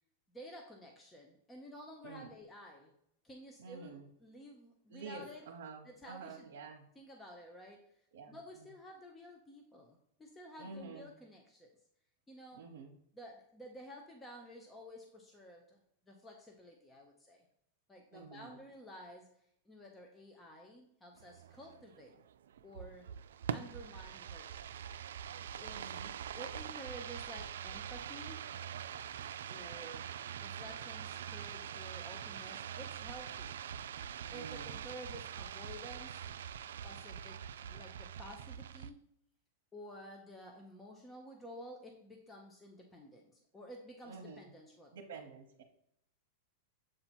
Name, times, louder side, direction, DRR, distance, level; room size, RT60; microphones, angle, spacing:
voice 1, 0.3-2.9 3.2-5.5 5.8-6.5 6.9-11.8 12.3-12.6 13.1-17.5 17.9-22.2 22.6-23.1 23.5-24.8 25.6-26.0 26.4-28.5 29.5-30.1 30.4-33.6 34.3-36.4 36.8-39.0 39.7-45.0, equal, 10° left, 1 dB, 0.7 m, -52 dB
voice 2, 3.6-4.0 4.9-6.9 8.1-8.4 10.6-11.1 12.5-12.9 18.1-18.5 25.7-26.1 34.3-34.8 44.1-44.5 44.9-45.6, right 4 dB, 70° right, 1 dB, 0.9 m, -49 dB
sound 1, 21.2-38.9, right 9 dB, 90° right, 0.3 m, -44 dB
7.7 x 2.8 x 4.4 m, 0.75 s
supercardioid pair, 155°, 0 cm